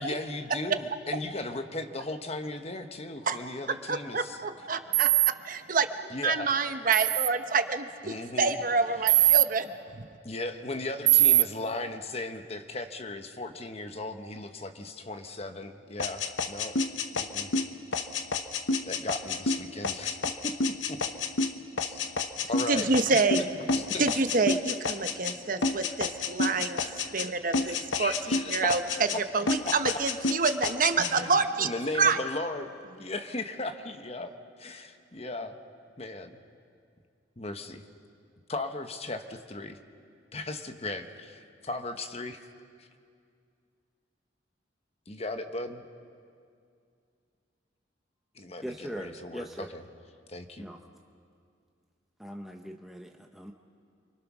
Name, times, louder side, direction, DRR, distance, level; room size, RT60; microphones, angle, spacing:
voice 1, 0.0-4.4 6.1-6.6 8.0-8.6 9.0-9.4 10.2-16.7 17.1-17.5 18.8-20.2 20.4-20.5 20.9-21.0 21.8-22.0 22.5-22.9 23.6-24.2 27.9-28.7 31.1-32.7 33.0-34.3 34.6-35.6 36.0-36.4 37.4-37.8 38.5-39.8 40.3-42.4 42.8-42.9 45.1-45.9 48.3-49.5 49.7-49.8 50.3-50.7, left 2 dB, 35° left, 7 dB, 1.1 m, -37 dB
voice 2, 3.9-5.1 5.4-10.0 22.7-23.5 24.0-26.8 27.1-28.1 28.5-28.8 29.3-31.7 32.0-32.2, right 4 dB, 45° right, 9 dB, 1.0 m, -27 dB
sound 1, 4.9-5.3 6.9-7.3 9.1-9.5 11.1-11.4, right 18 dB, 90° right, 0.5 m, -20 dB
sound 2, 16.0-25.4 25.6-27.3 27.5-29.2 29.5-31.1, left 3 dB, 85° left, 1.1 m, -30 dB
voice 3, 48.6-49.7 50.6-50.8 52.2-53.5, equal, ahead, 2 dB, 0.8 m, -40 dB
29.0 x 24.0 x 6.2 m, 2.3 s
head